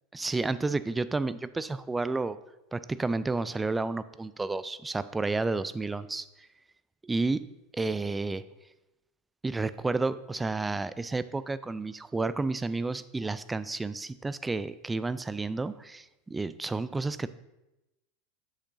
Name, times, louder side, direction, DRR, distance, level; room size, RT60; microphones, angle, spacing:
voice 1, 0.1-2.4 2.7-6.5 7.0-7.5 7.7-8.4 9.4-17.3, right 3 dB, 15° right, 15 dB, 0.3 m, -31 dB
7.9 x 6.5 x 2.6 m, 0.96 s
hypercardioid pair, 85°, 0 cm